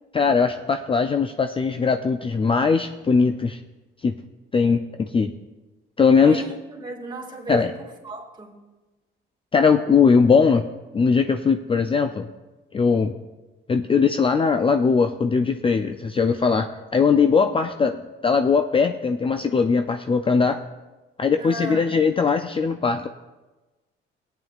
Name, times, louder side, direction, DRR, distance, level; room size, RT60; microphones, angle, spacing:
voice 1, 0.1-3.6 4.0-4.1 4.5-5.3 6.0-6.4 7.5-7.7 9.5-10.6 10.9-12.3 12.7-13.1 13.7-20.6 21.2-23.1, left 5 dB, 25° left, 7 dB, 0.4 m, -20 dB
voice 2, 6.2-8.6 21.4-21.9, right 2 dB, 20° right, -1 dB, 2.2 m, -34 dB
17.5 x 9.1 x 2.4 m, 1.2 s
cardioid pair, 90°, 20 cm